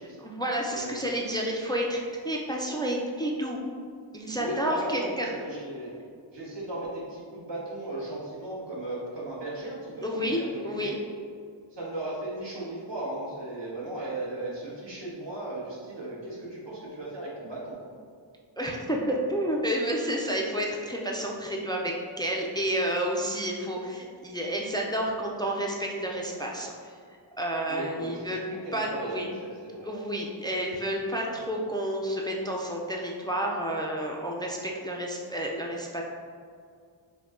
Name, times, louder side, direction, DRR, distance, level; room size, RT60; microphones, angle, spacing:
voice 1, 0.2-2.0 2.2-3.6 4.1-5.3 10.0-11.0 18.6-27.0 27.4-28.4 28.7-29.3 29.8-36.0, equal, 10° left, -1 dB, 0.4 m, -30 dB
voice 2, 0.7-1.0 4.4-5.9 6.3-10.9 11.7-17.8 27.7-29.9, right 1 dB, 60° right, -6 dB, 1.4 m, -36 dB
5.8 x 2.3 x 3.7 m, 2.2 s
wide cardioid pair, 65°, 49 cm